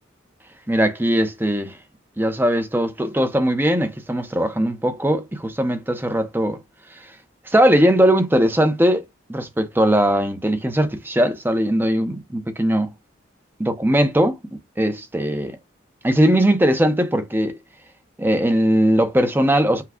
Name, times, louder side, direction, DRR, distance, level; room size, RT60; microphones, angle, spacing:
voice 1, 0.7-1.8 2.2-6.6 7.5-9.0 9.3-12.9 13.6-14.3 14.8-15.6 16.0-17.6 18.2-19.8, equal, 10° right, 0.7 m, -19 dB
5.7 x 2.2 x 3.6 m
head